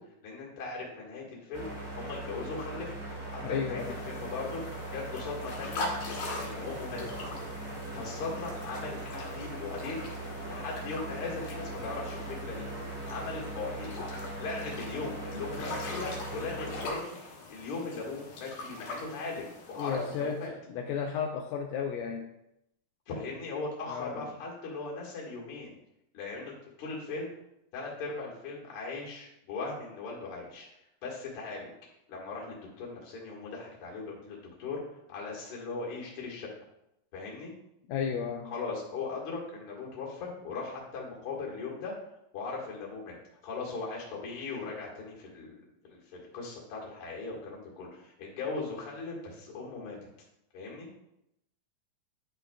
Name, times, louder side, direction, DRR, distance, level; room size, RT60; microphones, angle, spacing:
voice 1, 0.2-1.7 2.0-2.9 3.3-4.6 4.9-5.9 6.4-7.0 7.9-10.1 10.5-12.7 13.1-13.9 14.4-17.2 17.5-20.5 23.1-25.7 26.1-26.5 26.8-27.3 27.7-30.7 31.0-31.7 32.1-34.8 35.1-36.5 37.1-37.5 38.4-41.9 42.3-43.2 43.4-45.5 45.8-50.0 50.5-50.9, left 3 dB, 50° left, -3 dB, 2.2 m, -38 dB
sound 1, 1.5-16.9, right 1 dB, 30° right, 1.4 m, -40 dB
voice 2, 3.4-4.0 19.8-22.3 23.9-24.3 37.9-38.5, left 7 dB, 80° left, 3 dB, 2.1 m, -33 dB
sound 2, 3.8-20.4, left 2 dB, 65° left, 2.5 m, -42 dB
9.9 x 6.0 x 2.3 m, 0.82 s
omnidirectional pair, 3.9 m